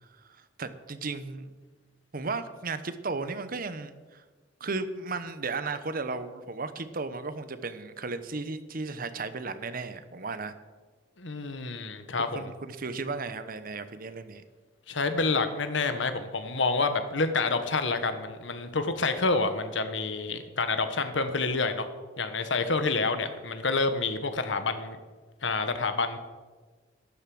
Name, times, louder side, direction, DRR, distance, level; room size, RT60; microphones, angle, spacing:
voice 1, 0.0-1.5 2.1-4.2 4.6-10.5 12.2-14.4, right 3 dB, 50° right, 11 dB, 1.0 m, -35 dB
voice 2, 11.2-12.4 14.9-21.9 22.2-25.0 25.4-26.2, left 3 dB, 80° left, 9 dB, 1.4 m, -28 dB
12.0 x 10.5 x 7.8 m, 1.4 s
head